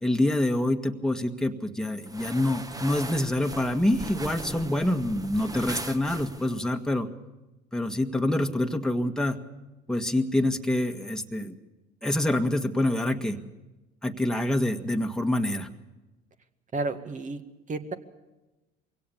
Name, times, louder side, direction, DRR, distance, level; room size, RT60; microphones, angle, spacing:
voice 1, 0.0-7.1 7.7-9.4 9.9-11.6 12.0-13.4 14.0-15.7, left 1 dB, 5° left, 4 dB, 1.7 m, -26 dB
sound 1, 2.0-6.7, right 2 dB, 15° right, 1.4 m, -39 dB
voice 2, 16.7-17.4 17.7-17.9, right 3 dB, 35° right, 8 dB, 1.9 m, -31 dB
22.5 x 17.0 x 7.2 m, 1.1 s
hypercardioid pair, 70°, 21 cm